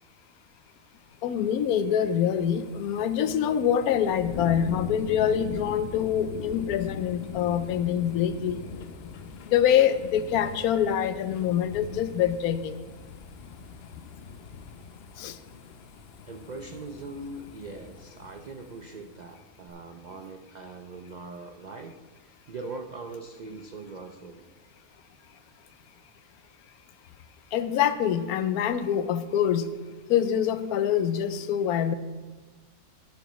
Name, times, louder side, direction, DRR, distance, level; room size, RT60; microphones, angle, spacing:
sound 1, 1.1-19.2 19.7-19.8, left 5 dB, 55° left, 0.7 m, -42 dB
voice 1, 1.2-8.6 9.5-12.8 15.2-15.4 27.5-29.7 30.1-31.9, left 9 dB, 85° left, 12 dB, 1.1 m, -25 dB
voice 2, 16.3-21.9 22.2-24.5, right 3 dB, 85° right, 5 dB, 0.4 m, -41 dB
10.5 x 10.5 x 3.1 m, 1.3 s
omnidirectional pair, 1.5 m